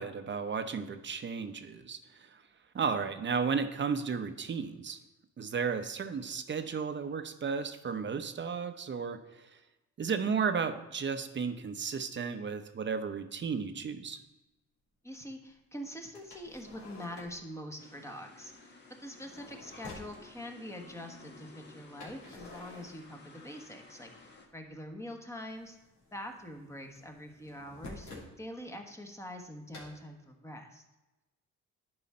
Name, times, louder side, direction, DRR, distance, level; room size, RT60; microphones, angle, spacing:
voice 1, 0.0-2.4 2.7-5.0 5.4-9.5 10.0-14.2, right 6 dB, 40° right, 8 dB, 0.8 m, -34 dB
voice 2, 15.0-18.7 19.0-25.8 26.1-28.1 28.4-30.8, equal, 10° left, 3 dB, 1.3 m, -44 dB
sound 1, 16.1-17.5 19.0-20.2 22.0-23.7 23.9-24.8 25.0-28.3 29.7-29.9, left 2 dB, 70° left, 2.8 m, -50 dB
sound 2, 17.8-24.5, left 3 dB, 35° left, 1.4 m, -55 dB
11.0 x 4.9 x 4.3 m, 1.0 s
cardioid pair, 90°, 30 cm